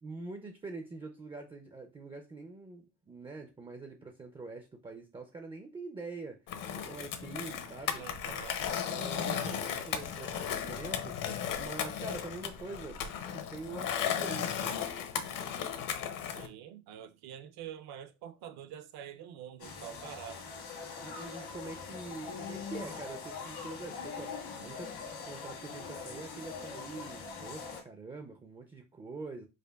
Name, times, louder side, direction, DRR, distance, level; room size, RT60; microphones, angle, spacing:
voice 1, 0.0-6.4 6.8-8.1 8.7-14.9 21.0-24.9 25.2-29.5, right 3 dB, 15° right, 0.4 m, -45 dB
Skateboard, 6.5-16.5, left 8 dB, 50° left, 0.7 m, -35 dB
voice 2, 8.0-8.6 9.2-9.6 16.2-20.4, right 10 dB, 60° right, 0.6 m, -46 dB
sound 1, 19.6-27.8, left 5 dB, 75° left, 1.6 m, -42 dB
5.1 x 2.1 x 2.2 m
supercardioid pair, 100°, 42 cm